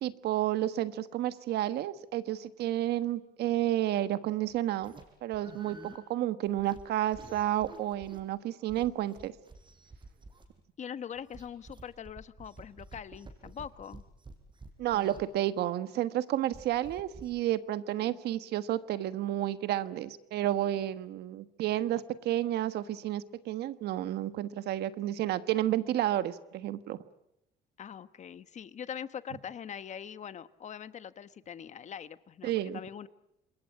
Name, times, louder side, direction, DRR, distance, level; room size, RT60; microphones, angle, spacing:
voice 1, 0.0-4.9 5.2-9.3 14.8-27.0 32.4-32.8, right 13 dB, 75° right, 13 dB, 1.3 m, -31 dB
sound 1, 4.5-5.0 5.3-6.0 6.5-6.8 7.1-8.2 8.7-10.6 11.1-15.2 16.5-17.3, right 3 dB, 30° right, 5.2 m, -50 dB
voice 2, 10.8-14.0 18.0-18.2 27.8-33.1, left 8 dB, 45° left, 14 dB, 1.2 m, -43 dB
27.5 x 21.5 x 8.7 m, 0.85 s
cardioid pair, 110°, 17 cm